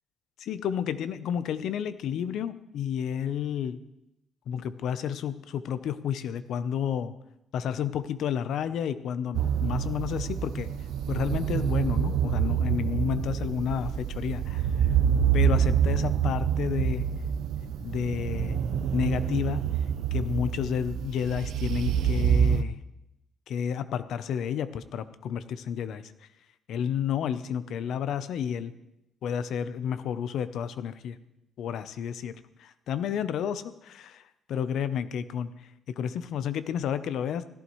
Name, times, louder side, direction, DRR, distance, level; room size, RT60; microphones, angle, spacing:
voice 1, 0.4-3.8 4.5-7.1 7.5-10.7 11.1-15.0 15.3-17.1 17.8-18.6 18.9-19.8 20.1-22.8 23.5-26.3 26.7-28.7 29.2-31.2 31.6-37.4, left 8 dB, 70° left, 13 dB, 0.7 m, -31 dB
sound 1, 9.3-22.6, right 8 dB, 75° right, 0.6 m, -27 dB
16.5 x 14.0 x 3.1 m, 0.88 s
cardioid pair, 135°, 0 cm